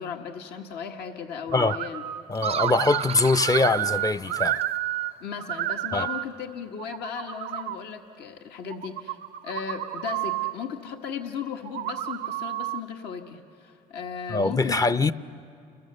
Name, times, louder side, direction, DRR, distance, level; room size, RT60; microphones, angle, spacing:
voice 1, 0.0-2.0 5.2-9.2 9.4-15.1, left 7 dB, 70° left, 1.5 m, -36 dB
sound 1, 1.5-2.2 2.5-5.1 5.4-6.2 6.8-7.8 8.7-10.5 11.6-12.8, right 14 dB, 80° right, 0.7 m, -30 dB
voice 2, 2.3-4.6 5.9-6.1 14.3-15.1, left 3 dB, 20° left, 0.6 m, -23 dB
sound 2, 2.3-4.8, right 7 dB, 35° right, 0.5 m, -33 dB
29.5 x 21.0 x 6.7 m
supercardioid pair, 75°, 17 cm